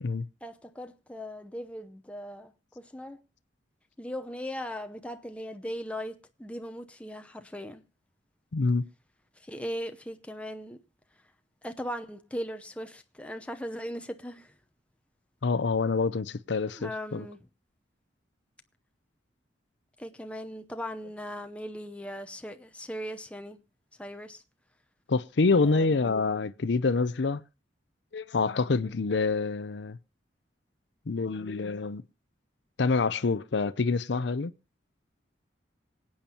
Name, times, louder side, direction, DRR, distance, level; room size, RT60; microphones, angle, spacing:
voice 1, 0.4-3.2 4.0-7.8 9.4-10.8 11.6-14.5 16.7-17.4 20.0-23.6 24.0-24.4 25.6-26.1, equal, 5° left, 0.7 m, -38 dB
voice 2, 8.5-8.9 15.4-17.3 25.1-27.4 28.1-30.0 31.1-32.0 32.8-34.5, left 4 dB, 70° left, 0.6 m, -26 dB
25.5 x 8.7 x 2.9 m
head